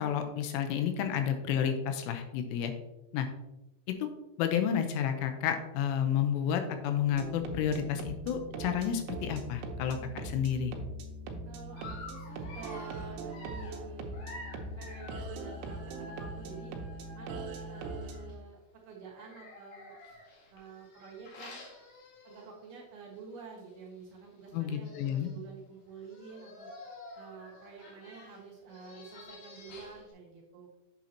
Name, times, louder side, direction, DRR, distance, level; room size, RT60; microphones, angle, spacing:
voice 1, 0.0-2.7 3.1-3.3 4.0-4.1 4.4-10.7 24.5-25.3, left 8 dB, 85° left, 7 dB, 3.3 m, -31 dB
sound 1, 7.1-18.3, right 2 dB, 80° right, 3.2 m, -41 dB
voice 2, 11.5-14.2 14.8-16.8 17.1-18.6 18.9-19.9 20.5-21.6 22.2-26.7 27.1-30.8, right 5 dB, 65° right, -2 dB, 2.9 m, -49 dB
Dog, 11.8-18.3 19.1-22.7 23.1-23.3 23.6-23.7 24.5-24.6 24.8-25.4 26.0-30.1, left 2 dB, 70° left, 3.8 m, -50 dB
8.5 x 7.4 x 2.8 m, 0.95 s
omnidirectional pair, 5.7 m